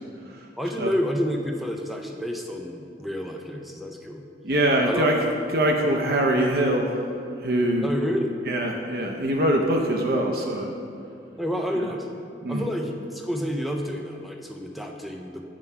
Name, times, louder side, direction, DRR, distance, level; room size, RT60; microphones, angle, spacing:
voice 1, 0.6-4.2 4.8-5.2 7.8-8.4 11.4-12.1 12.5-15.5, equal, ahead, 2 dB, 0.4 m, -29 dB
voice 2, 4.4-5.1 5.5-7.0 7.4-7.9 8.5-10.7 11.8-11.9 12.4-12.6, right 1 dB, 55° right, 0 dB, 0.6 m, -23 dB
7.4 x 4.7 x 5.6 m, 2.7 s
head